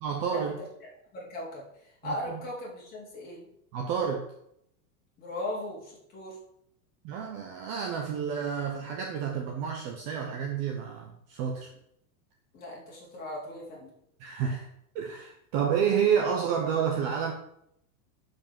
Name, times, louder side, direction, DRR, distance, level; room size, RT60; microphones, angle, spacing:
voice 1, 0.0-0.6 2.0-2.4 3.7-4.3 7.0-11.7 14.2-14.7 14.9-17.3, right 7 dB, 25° right, 3 dB, 0.8 m, -29 dB
voice 2, 1.1-1.7 2.0-3.4 5.2-6.4 12.5-13.9, left 1 dB, 20° left, -4 dB, 4.0 m, -37 dB
11.5 x 5.4 x 6.8 m, 0.74 s
supercardioid pair, 180°, 46 cm